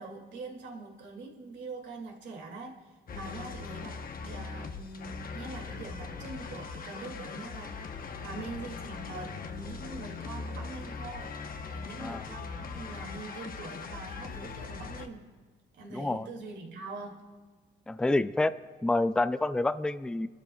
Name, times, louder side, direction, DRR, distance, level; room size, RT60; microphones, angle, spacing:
voice 1, 0.0-7.9 8.2-11.4 11.7-15.3 15.7-17.3, right 3 dB, 65° right, 0 dB, 2.5 m, -43 dB
sound 1, 3.1-15.1, left 5 dB, 45° left, 1.0 m, -40 dB
voice 2, 15.9-16.3 17.9-18.5 18.8-20.3, left 2 dB, 5° left, 13 dB, 0.3 m, -28 dB
29.5 x 12.5 x 2.4 m, 1.5 s
cardioid pair, 90°, 20 cm